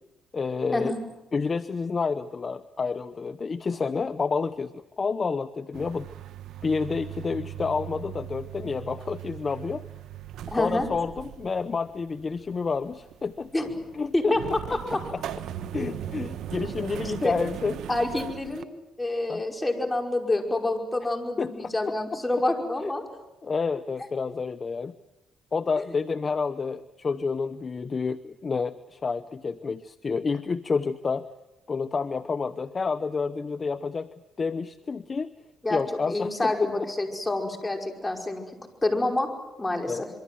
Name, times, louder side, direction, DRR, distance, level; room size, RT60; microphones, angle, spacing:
voice 1, 0.3-1.0 1.3-6.1 6.6-9.8 10.6-13.5 13.9-14.5 15.1-15.2 15.7-17.8 19.3-19.4 21.4-22.0 23.4-24.9 25.5-31.3 31.7-34.1 34.4-35.3 35.7-36.9 39.9-40.0, left 4 dB, 35° left, 12 dB, 0.8 m, -29 dB
sound 1, 5.7-18.6, right 11 dB, 80° right, 1.2 m, -39 dB
voice 2, 10.5-10.9 13.5-13.7 14.1-14.4 14.7-15.0 17.0-17.3 17.9-18.7 19.0-23.0 35.6-38.4 38.8-39.3 39.6-40.1, left 2 dB, 15° left, 3 dB, 5.3 m, -27 dB
26.5 x 23.5 x 7.7 m, 1.0 s
cardioid pair, 90°, 0 cm